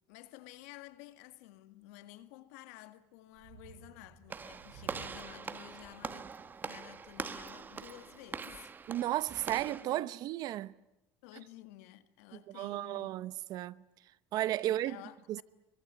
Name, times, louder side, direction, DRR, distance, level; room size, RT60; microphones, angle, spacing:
voice 1, 0.0-6.3 6.6-9.1 9.5-10.1 11.2-13.2 14.6-15.4, left 16 dB, 90° left, 1.8 m, -53 dB
sound 1, 3.3-8.6, right 6 dB, 85° right, 5.3 m, -57 dB
Walk footsteps / Slam, 4.3-9.9, right 5 dB, 25° right, 1.2 m, -43 dB
voice 2, 8.9-10.7 12.5-13.8 14.3-15.0 15.3-15.4, right 14 dB, 60° right, 0.9 m, -34 dB
25.5 x 23.5 x 9.5 m
supercardioid pair, 110°, 8 cm